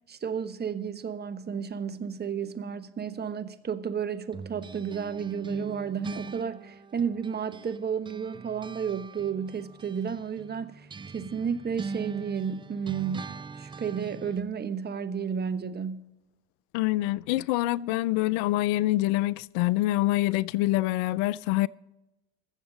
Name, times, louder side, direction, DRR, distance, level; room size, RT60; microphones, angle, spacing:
voice 1, 0.1-16.1, right 7 dB, 30° right, 1.1 m, -32 dB
sound 1, 4.3-7.8 8.0-14.4, right 4 dB, 15° right, 0.4 m, -42 dB
voice 2, 16.7-21.7, left 17 dB, 70° left, 0.5 m, -25 dB
21.0 x 7.4 x 4.0 m
hypercardioid pair, 60°, 32 cm